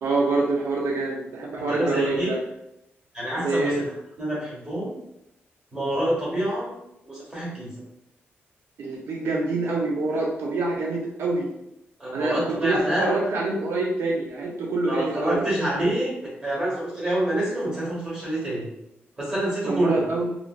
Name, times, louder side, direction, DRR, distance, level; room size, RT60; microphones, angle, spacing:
voice 1, 0.0-2.4 3.4-3.8 8.8-11.5 12.1-15.5 19.7-20.3, right 2 dB, 75° right, -2 dB, 0.5 m, -26 dB
voice 2, 1.6-2.3 3.1-3.7 4.2-4.9 5.7-6.7 7.0-7.8 12.0-13.1 14.9-18.7 19.2-20.0, right 1 dB, 20° right, -7 dB, 1.3 m, -27 dB
3.0 x 2.5 x 2.2 m, 0.83 s
wide cardioid pair, 155°, 4 cm